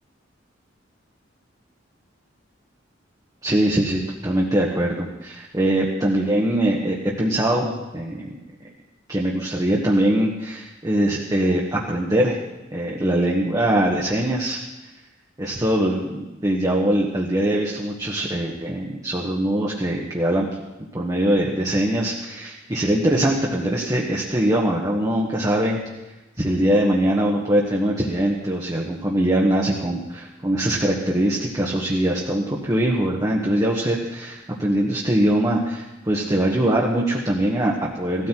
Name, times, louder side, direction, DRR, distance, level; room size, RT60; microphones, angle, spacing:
voice 1, 3.4-8.3 9.1-12.4 12.7-14.6 15.4-20.5 20.9-25.8 26.4-38.3, right 1 dB, 20° right, -3 dB, 1.5 m, -22 dB
16.5 x 13.5 x 4.6 m, 1.1 s
head